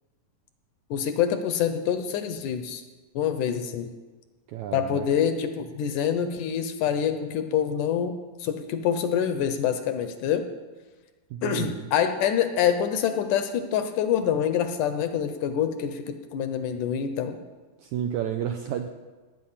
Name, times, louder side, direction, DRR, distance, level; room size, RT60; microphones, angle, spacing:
voice 1, 0.9-2.8 3.2-3.9 4.7-8.1 8.4-10.5 11.4-17.4, left 8 dB, 75° left, 8 dB, 2.1 m, -26 dB
voice 2, 4.5-5.1 11.3-11.9 17.8-18.9, right 9 dB, 85° right, 5 dB, 1.7 m, -31 dB
19.0 x 9.0 x 5.7 m, 1.3 s
omnidirectional pair, 4.1 m